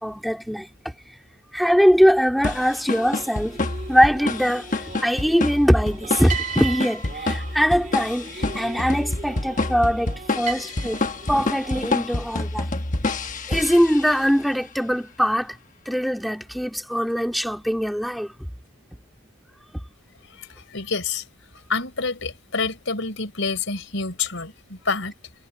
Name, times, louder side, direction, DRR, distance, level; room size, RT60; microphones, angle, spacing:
voice 1, 0.0-0.7 1.5-3.6 3.9-11.0 11.3-12.7 13.5-15.6 15.9-18.3, equal, ahead, 2.8 m, -22 dB
sound 1, 2.4-14.4, left 2 dB, 40° left, 1.3 m, -28 dB
sound 2, 2.9-12.0, right 6 dB, 35° right, 3.6 m, -37 dB
voice 2, 20.2-21.2 21.7-25.1, left 4 dB, 65° left, 4.4 m, -28 dB
head